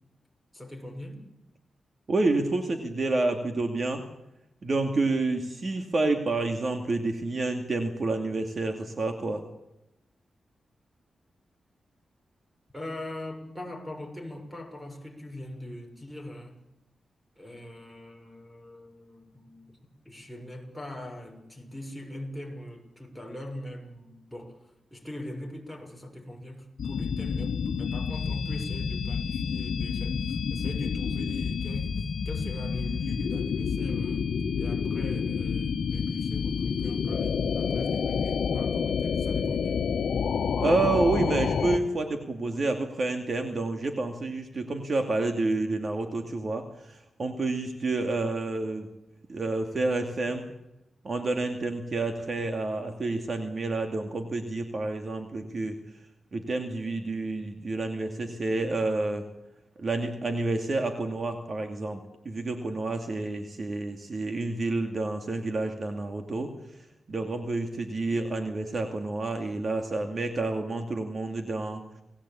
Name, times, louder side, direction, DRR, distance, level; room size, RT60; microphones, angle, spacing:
voice 1, 0.5-1.2 12.7-16.5 17.4-19.7 20.0-34.3 34.6-39.8, left 1 dB, 5° right, 5 dB, 6.2 m, -41 dB
voice 2, 2.1-4.0 4.6-9.4 40.6-48.9 49.3-50.4 51.0-55.8 56.3-59.3 59.8-66.5 67.1-71.8, right 2 dB, 45° right, 5 dB, 2.4 m, -29 dB
sound 1, 26.8-41.8, left 6 dB, 75° left, 1.4 m, -29 dB
29.0 x 19.0 x 8.7 m, 0.88 s
wide cardioid pair, 100°, 0 cm